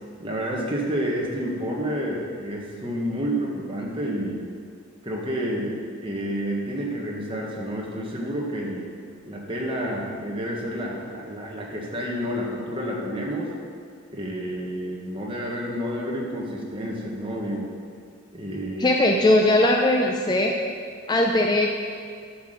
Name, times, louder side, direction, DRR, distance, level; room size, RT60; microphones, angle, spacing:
voice 1, 0.2-4.4 5.0-8.9 9.3-13.5 14.1-17.7 18.3-19.0, equal, 25° right, -2 dB, 1.4 m, -29 dB
voice 2, 18.8-20.5 21.1-21.7, left 1 dB, 20° left, 1 dB, 0.5 m, -19 dB
10.5 x 6.0 x 5.1 m, 2.1 s
head